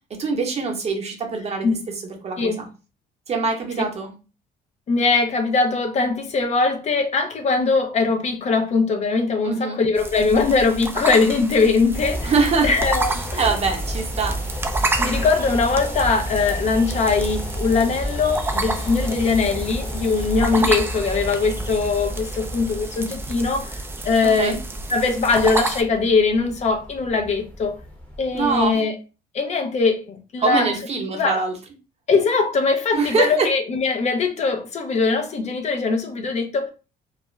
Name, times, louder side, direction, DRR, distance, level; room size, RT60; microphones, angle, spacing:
voice 1, 0.1-2.7 3.3-4.1 9.4-9.8 12.2-12.7 13.4-14.4 20.6-20.7 24.2-24.5 28.3-28.8 30.4-31.5 32.9-33.5, right 4 dB, 40° right, 0.8 m, -23 dB
voice 2, 4.9-12.3 12.6-13.6 15.0-24.6 24.9-27.8 28.2-29.0 29.3-30.7 31.1-31.4 32.1-36.7, left 4 dB, 40° left, 0.5 m, -21 dB
sound 1, 10.0-25.8, right 2 dB, 15° right, 0.4 m, -30 dB
sound 2, 11.9-28.7, equal, 10° left, 0.8 m, -32 dB
2.4 x 2.1 x 3.1 m
cardioid pair, 110°, 17 cm